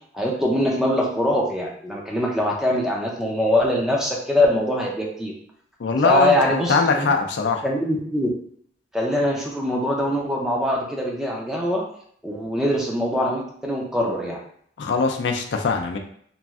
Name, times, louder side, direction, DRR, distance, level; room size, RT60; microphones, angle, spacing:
voice 1, 0.1-5.3 6.0-7.1 7.6-8.3 8.9-11.8 12.2-14.4, left 1 dB, 5° right, -2 dB, 0.4 m, -23 dB
voice 2, 5.8-7.6 14.8-16.0, left 4 dB, 75° left, 3 dB, 0.4 m, -22 dB
3.1 x 2.5 x 2.3 m, 0.63 s
head